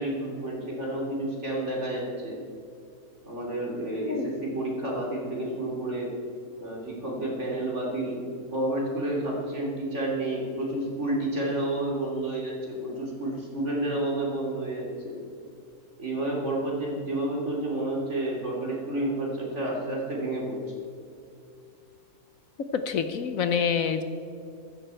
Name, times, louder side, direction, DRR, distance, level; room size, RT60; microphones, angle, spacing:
voice 1, 0.0-2.4 3.3-6.1 6.6-8.2 8.5-15.2 16.0-20.6, right 1 dB, 45° right, -2 dB, 3.2 m, -30 dB
voice 2, 22.9-24.0, left 6 dB, 65° left, 9 dB, 1.1 m, -26 dB
14.5 x 13.0 x 4.5 m, 2.5 s
omnidirectional pair, 1.7 m